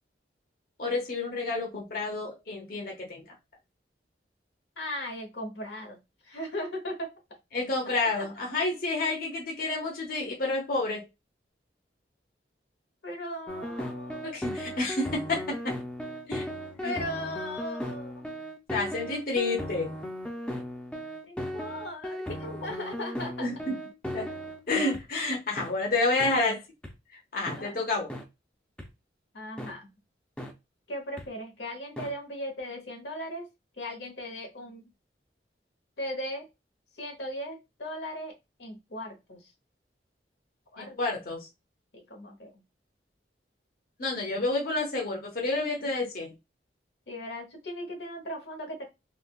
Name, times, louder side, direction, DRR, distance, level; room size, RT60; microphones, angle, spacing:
voice 1, 0.8-3.2 7.5-11.1 14.2-15.7 16.3-16.4 16.8-17.0 18.7-19.9 23.4-23.8 24.1-24.3 24.7-26.6 27.3-28.1 40.8-41.5 44.0-46.3, left 2 dB, 55° left, 0.9 m, -29 dB
voice 2, 4.8-6.0 6.2-7.1 8.2-8.3 13.0-14.4 16.8-18.2 21.3-23.5 27.4-27.8 29.3-29.9 30.9-33.5 33.8-34.9 36.0-36.4 37.0-38.3 38.6-39.4 40.7-41.2 41.9-42.5 47.1-48.9, left 1 dB, 80° left, 1.0 m, -37 dB
sound 1, 13.5-25.0 25.6-25.7 26.2-26.3 26.8-26.9 27.5-27.6 28.1-28.2 28.8-28.9 29.6-29.7 30.4-30.5 31.2-31.3 32.0-32.1, equal, 5° left, 0.4 m, -37 dB
3.5 x 2.2 x 2.3 m
head